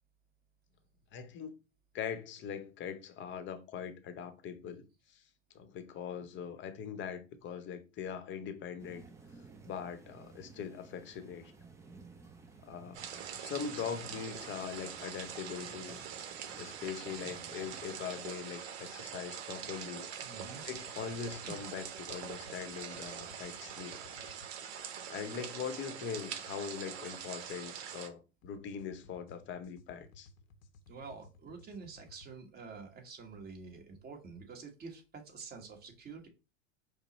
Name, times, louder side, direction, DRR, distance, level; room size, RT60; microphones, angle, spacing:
voice 1, 1.1-1.6 1.9-5.2 5.5-9.1 9.6-11.5 12.6-13.0 13.4-16.0 16.6-20.1 20.7-24.1 25.1-30.3, left 7 dB, 30° left, 0.7 m, -41 dB
sound 1, 8.8-18.0, right 4 dB, 10° right, 0.4 m, -55 dB
sound 2, 12.9-28.1, right 8 dB, 55° right, 0.9 m, -44 dB
voice 2, 20.2-20.6 21.4-21.6 30.9-36.3, right 4 dB, 25° right, 1.2 m, -48 dB
sound 3, 20.6-24.5 28.4-32.3, left 3 dB, 80° left, 0.8 m, -59 dB
5.3 x 2.0 x 4.0 m
hypercardioid pair, 110°, 39 cm